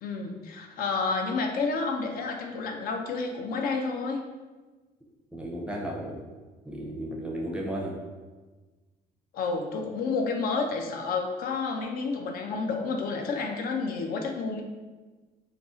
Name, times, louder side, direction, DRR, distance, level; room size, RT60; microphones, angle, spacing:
voice 1, 0.0-4.2 9.3-14.6, left 4 dB, 60° left, 3 dB, 0.4 m, -30 dB
voice 2, 5.3-6.2 6.7-7.9, right 1 dB, 5° right, -3 dB, 0.5 m, -34 dB
2.5 x 2.0 x 3.5 m, 1.3 s
cardioid pair, 110°, 17 cm